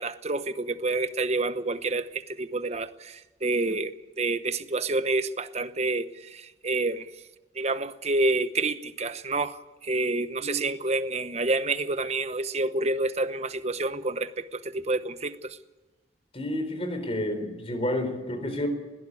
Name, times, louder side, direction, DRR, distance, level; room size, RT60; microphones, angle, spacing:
voice 1, 0.0-7.1 7.5-15.6, right 2 dB, 35° right, 0.9 m, -28 dB
voice 2, 16.3-18.7, left 1 dB, 30° left, 4.2 m, -30 dB
21.5 x 16.5 x 8.3 m
head